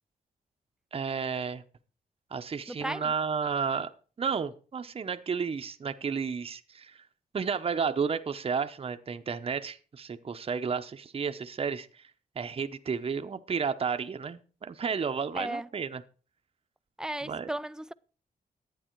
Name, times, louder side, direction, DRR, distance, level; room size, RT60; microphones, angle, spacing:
voice 1, 0.9-1.6 2.3-3.9 4.2-7.0 7.3-12.1 12.4-16.0 17.2-17.5, right 6 dB, 40° right, 0.8 m, -32 dB
voice 2, 2.7-3.1 15.3-15.7 17.0-17.9, right 1 dB, 5° right, 0.4 m, -35 dB
11.5 x 9.2 x 4.6 m
cardioid pair, 105°, 16 cm